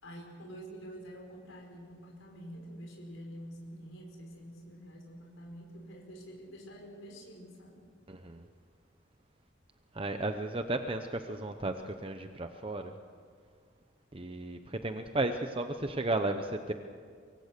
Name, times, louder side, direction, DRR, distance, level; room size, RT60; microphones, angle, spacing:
voice 1, 0.0-7.8, equal, 85° left, 0 dB, 4.9 m, -47 dB
voice 2, 8.1-8.4 9.9-12.9 14.1-16.7, right 2 dB, 30° right, 7 dB, 0.8 m, -34 dB
24.0 x 24.0 x 6.8 m, 2.1 s
head